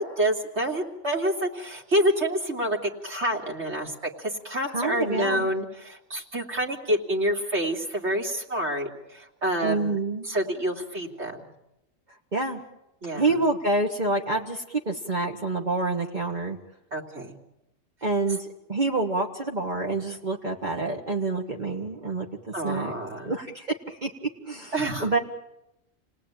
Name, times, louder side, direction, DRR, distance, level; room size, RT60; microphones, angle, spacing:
voice 1, 0.0-9.9 10.2-11.5 13.0-13.4 16.9-17.3 22.5-23.3 24.7-25.1, right 1 dB, 55° right, -1 dB, 3.2 m, -28 dB
voice 2, 4.7-5.4 9.6-10.3 12.3-12.6 13.2-16.6 18.0-22.3 22.6-22.9 23.2-24.7 25.0-25.2, right 2 dB, 35° right, 0 dB, 1.6 m, -27 dB
29.5 x 19.5 x 8.9 m, 0.93 s
omnidirectional pair, 1.4 m